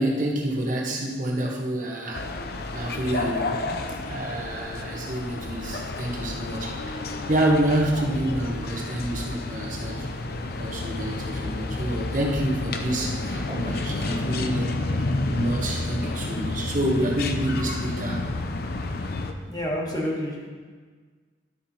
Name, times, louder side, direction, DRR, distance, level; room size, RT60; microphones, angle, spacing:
voice 1, 0.0-2.3 2.7-3.8 4.1-10.1 10.6-14.8 15.3-18.3, right 1 dB, 45° right, 0 dB, 1.4 m, -28 dB
sound 1, 2.1-19.3, left 2 dB, 55° left, 0.6 m, -30 dB
voice 2, 19.5-20.5, equal, 20° left, -2 dB, 1.6 m, -29 dB
12.5 x 5.9 x 4.3 m, 1.5 s
head